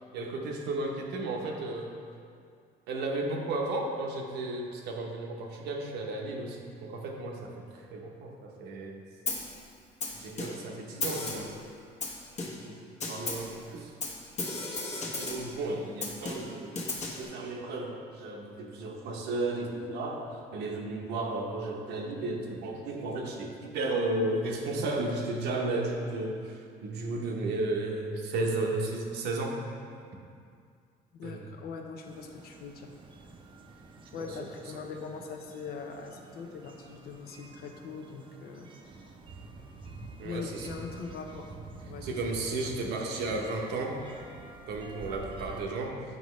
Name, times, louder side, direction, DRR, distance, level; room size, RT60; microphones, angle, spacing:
voice 1, 0.1-2.0 2.9-9.0 10.1-11.5 12.4-13.9 15.2-16.8 17.2-29.6 31.2-31.5 34.2-34.4 40.2-40.7 42.0-44.0 44.7-46.0, right 2 dB, 80° right, 1 dB, 0.9 m, -34 dB
Snare drum, 9.3-9.6 10.0-10.7 11.0-11.6 12.0-12.7 13.0-13.5 14.0-15.5 16.0-17.2, left 3 dB, 45° left, 1.1 m, -35 dB
voice 2, 31.1-32.9 34.1-38.7 40.2-41.6 41.8-42.5, left 5 dB, 65° left, 3 dB, 0.7 m, -41 dB
sound 1, 32.0-45.6, right 3 dB, 30° right, 0.5 m, -48 dB
7.9 x 5.2 x 3.2 m, 2.3 s
cardioid pair, 110°, 17 cm